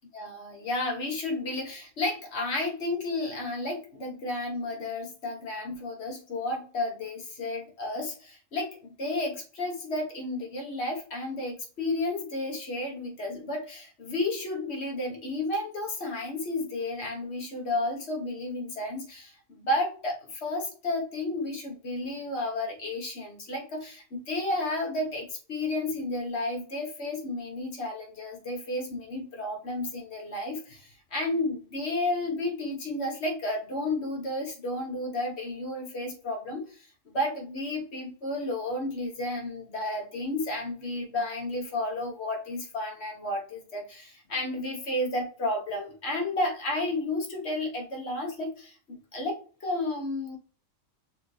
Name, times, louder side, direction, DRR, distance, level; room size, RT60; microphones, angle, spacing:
voice 1, 0.1-19.3 19.6-50.4, left 2 dB, 60° left, 0 dB, 1.4 m, -32 dB
6.3 x 2.6 x 3.1 m, 0.39 s
omnidirectional pair, 1.3 m